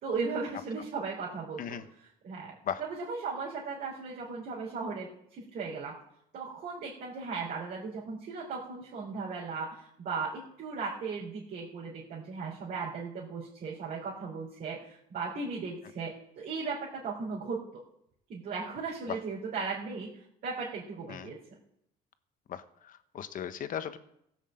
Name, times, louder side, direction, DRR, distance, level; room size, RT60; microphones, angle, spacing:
voice 1, 0.0-1.6 2.0-5.9 6.3-17.6 18.3-21.4, right 4 dB, 60° right, -6 dB, 3.5 m, -37 dB
voice 2, 22.5-24.0, left 9 dB, 55° left, 11 dB, 1.0 m, -37 dB
16.0 x 6.5 x 7.6 m, 0.78 s
cardioid pair, 110°, 17 cm